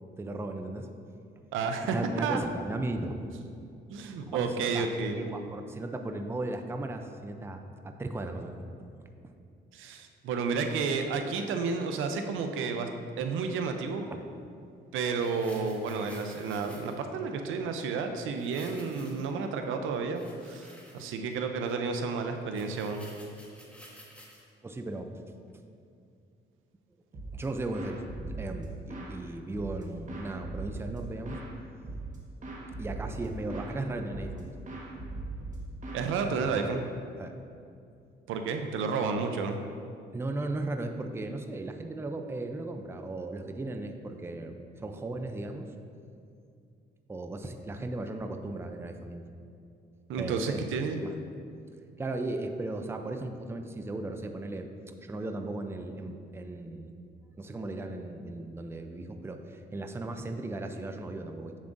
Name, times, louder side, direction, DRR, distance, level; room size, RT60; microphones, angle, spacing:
voice 1, 0.2-0.9 1.8-3.2 4.3-8.6 24.6-25.1 27.3-28.0 28.4-31.4 32.8-34.6 36.4-36.6 37.2-37.4 40.1-45.7 47.1-49.2 50.2-50.7 51.0-51.1 52.0-54.7 55.0-56.9 57.4-61.5, right 2 dB, 10° right, 5 dB, 0.4 m, -36 dB
voice 2, 1.5-2.4 3.9-5.4 9.7-12.9 13.2-14.1 14.9-23.1 35.9-36.8 38.3-39.6 50.1-51.0, right 5 dB, 85° right, 6 dB, 0.6 m, -31 dB
sound 1, 15.1-17.0 18.3-19.4 19.9-21.3 21.7-21.8 22.2-22.3 22.5-24.4 24.9-25.0, equal, 5° left, 1.2 m, -52 dB
sound 2, 27.1-27.5 27.7-29.2 29.5-31.5 31.8-32.2 32.4-33.7 34.1-34.4 34.7-36.7, right 2 dB, 40° right, 1.4 m, -40 dB
7.3 x 7.2 x 2.6 m, 2.5 s
cardioid pair, 90°, 20 cm